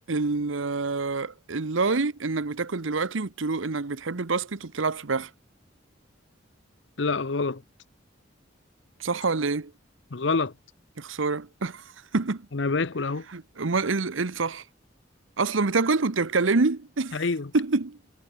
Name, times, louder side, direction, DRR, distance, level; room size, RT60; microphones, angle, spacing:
voice 1, 0.1-5.3 9.0-9.7 11.0-11.8 12.1-12.5 13.3-14.6 15.4-17.2 17.5-18.0, right 3 dB, 85° right, 1.0 m, -26 dB
voice 2, 7.0-7.6 10.1-10.5 12.5-13.3 17.1-17.5, left 3 dB, 65° left, 0.8 m, -26 dB
head